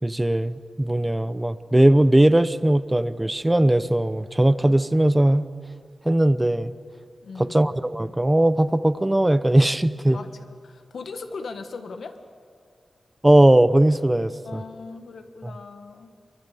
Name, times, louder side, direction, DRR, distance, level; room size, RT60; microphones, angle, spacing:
voice 1, 0.0-5.4 6.0-6.7 7.4-10.2 13.2-14.6 15.4-15.6, right 1 dB, 15° right, 12 dB, 0.8 m, -19 dB
voice 2, 7.2-7.6 10.1-12.2 14.4-16.1, left 4 dB, 80° left, 6 dB, 1.6 m, -38 dB
29.0 x 24.5 x 7.0 m, 2.1 s
wide cardioid pair, 115°, 0 cm